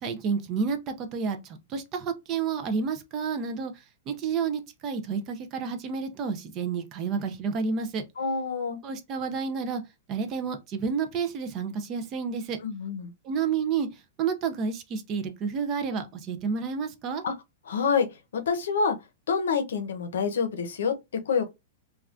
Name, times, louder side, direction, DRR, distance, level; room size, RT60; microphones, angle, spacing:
voice 1, 0.0-8.0 8.8-9.8 10.1-12.6 13.2-17.2, right 5 dB, 20° right, 0.3 m, -30 dB
voice 2, 8.2-8.8 12.6-13.1 17.2-17.3 17.7-18.1 18.3-19.0 19.3-21.5, left 5 dB, 80° left, 0.6 m, -27 dB
3.4 x 2.2 x 2.4 m
supercardioid pair, 180°, 0 cm